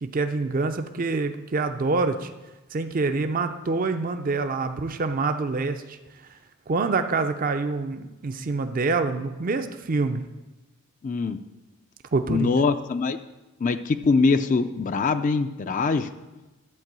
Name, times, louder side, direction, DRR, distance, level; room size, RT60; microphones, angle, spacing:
voice 1, 0.0-2.3 2.7-6.0 6.7-10.2 12.1-12.6, right 3 dB, 40° right, 8 dB, 0.5 m, -26 dB
voice 2, 11.0-11.4 12.3-13.2 13.6-16.1, left 4 dB, 35° left, 10 dB, 0.3 m, -23 dB
11.0 x 4.6 x 7.4 m, 1.1 s
head